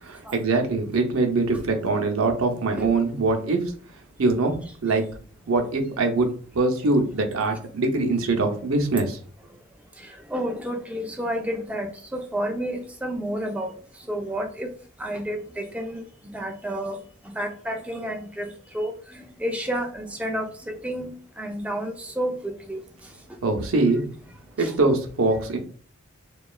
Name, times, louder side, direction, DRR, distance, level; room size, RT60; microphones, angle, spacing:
voice 1, 0.0-3.6 4.2-5.1 5.5-6.3 6.5-9.2 23.4-24.0 24.6-25.6, right 3 dB, 75° right, 4 dB, 0.6 m, -23 dB
voice 2, 10.0-13.7 14.1-14.7 15.0-17.0 17.2-22.8 24.6-24.7, equal, 5° right, 3 dB, 0.3 m, -31 dB
2.9 x 2.3 x 2.3 m, 0.43 s
head